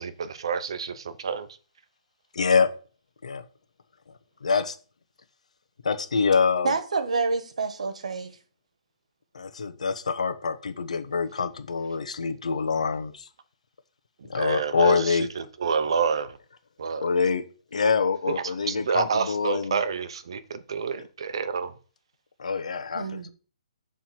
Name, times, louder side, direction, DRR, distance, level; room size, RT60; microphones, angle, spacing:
voice 1, 0.0-1.5 14.2-16.4 16.8-17.1 18.3-21.7, right 6 dB, 45° right, 0.8 m, -29 dB
voice 2, 2.3-2.7 3.2-3.4 4.4-4.8 5.8-6.7 9.3-13.3 14.3-15.3 17.0-17.5 17.7-19.8 22.4-23.3, left 5 dB, 70° left, 1.1 m, -25 dB
voice 3, 6.6-8.3 22.9-23.3, right 4 dB, 65° right, 1.4 m, -28 dB
7.5 x 3.6 x 6.1 m
hypercardioid pair, 175°, 4 cm